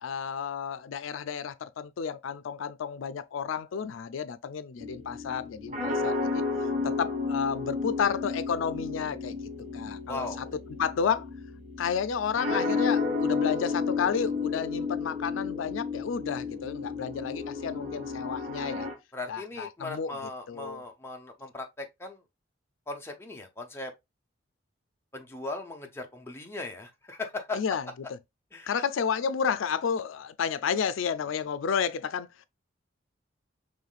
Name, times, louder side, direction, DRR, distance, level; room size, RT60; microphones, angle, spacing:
voice 1, 0.0-6.4 6.8-9.4 9.7-10.5 10.8-11.3 11.8-18.9 19.3-20.2 20.5-20.8 27.5-27.9 28.7-32.5, left 6 dB, 90° left, 0.4 m, -31 dB
sound 1, 4.8-18.9, left 4 dB, 40° right, 1.1 m, -32 dB
voice 2, 10.1-10.6 19.1-22.2 22.9-23.9 25.1-27.6 28.5-28.8, left 3 dB, 15° left, 0.8 m, -38 dB
5.6 x 3.1 x 2.4 m
head